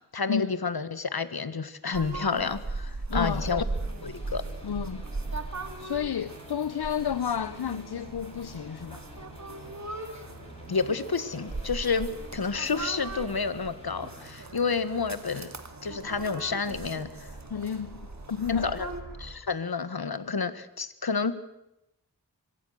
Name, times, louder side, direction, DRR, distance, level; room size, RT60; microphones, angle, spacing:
voice 1, 0.1-3.6 4.0-4.4 10.7-15.5 15.8-17.3 18.5-18.9 19.2-21.3, left 5 dB, 70° left, 1.7 m, -30 dB
sound 1, 1.9-19.0, right 3 dB, 45° right, 2.4 m, -39 dB
voice 2, 3.1-3.6 4.6-5.0 5.8-9.0 17.5-18.7, left 7 dB, 85° left, 0.8 m, -31 dB
sound 2, 3.7-14.3, equal, 15° left, 6.3 m, -51 dB
sound 3, 4.2-19.4, right 1 dB, 70° right, 5.8 m, -48 dB
25.0 x 24.0 x 6.7 m
wide cardioid pair, 70°, 38 cm